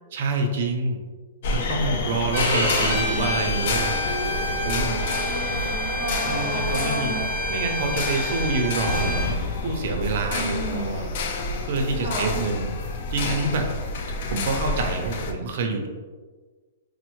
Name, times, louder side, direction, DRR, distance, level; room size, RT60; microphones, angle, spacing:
voice 1, 0.1-1.0 1.5-4.0 4.6-5.0 6.2-7.2 7.5-11.1 11.7-12.7 13.1-13.7 14.3-15.9, right 3 dB, 45° right, 3 dB, 0.4 m, -27 dB
sound 1, 1.4-15.3, left 2 dB, 40° left, 0.3 m, -28 dB
Bowed string instrument, 2.3-9.3, equal, 85° left, 1.4 m, -29 dB
voice 2, 2.8-3.4 4.8-7.2 10.3-10.9 12.0-12.3, right 1 dB, 65° left, -11 dB, 1.3 m, -33 dB
4.2 x 2.0 x 3.0 m, 1.4 s
hypercardioid pair, 175°, 0 cm